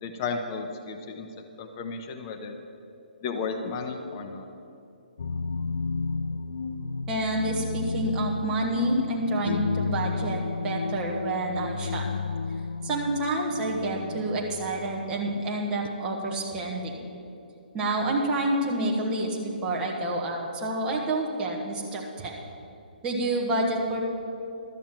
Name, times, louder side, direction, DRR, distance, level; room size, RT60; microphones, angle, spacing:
voice 1, 0.0-1.3 1.6-2.6 3.2-4.5, left 4 dB, 25° left, 5 dB, 0.7 m, -33 dB
sound 1, 5.2-15.9, left 4 dB, 90° left, 0.5 m, -32 dB
voice 2, 7.1-12.0 12.8-16.9 17.7-22.4 23.0-24.0, right 1 dB, 15° right, -2 dB, 1.3 m, -28 dB
12.0 x 7.1 x 7.5 m, 2.7 s
hypercardioid pair, 165°, 5 cm